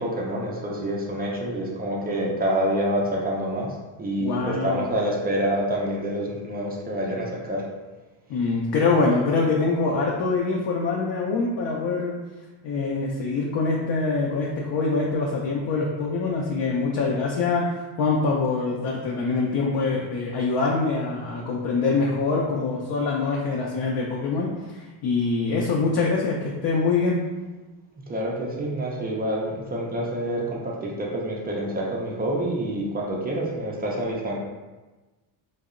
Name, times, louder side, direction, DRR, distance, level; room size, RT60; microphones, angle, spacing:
voice 1, 0.0-7.7 28.1-34.4, right 1 dB, 20° right, -3 dB, 0.3 m, -27 dB
voice 2, 4.2-4.9 8.3-12.2 12.6-27.2, left 4 dB, 55° left, -3 dB, 0.5 m, -24 dB
2.7 x 2.0 x 2.4 m, 1.2 s
cardioid pair, 100°, 48 cm